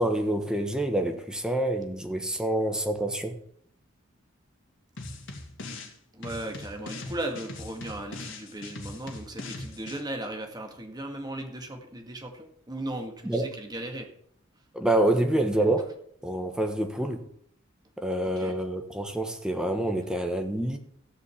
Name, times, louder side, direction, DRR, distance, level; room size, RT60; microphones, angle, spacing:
voice 1, 0.0-3.4 13.2-13.4 14.7-15.9 16.2-17.2 18.0-20.8, right 1 dB, 5° right, 1.3 m, -27 dB
sound 1, 5.0-5.9 6.2-10.0, left 2 dB, 60° left, 2.4 m, -40 dB
voice 2, 6.1-14.1 18.4-18.6, right 1 dB, 20° right, 1.9 m, -37 dB
14.5 x 5.2 x 8.5 m
head